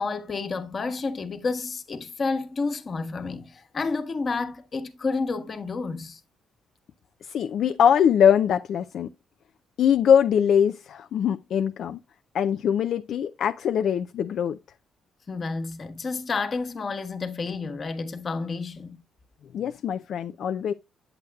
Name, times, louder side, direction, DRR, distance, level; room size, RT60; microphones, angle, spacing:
voice 1, 0.0-6.2 15.3-19.0, left 4 dB, 40° left, 1.3 m, -30 dB
voice 2, 7.2-9.1 9.8-12.0 12.3-14.6 19.5-20.7, left 8 dB, 70° left, 0.4 m, -22 dB
8.4 x 7.9 x 2.3 m
cardioid pair, 90°, 0 cm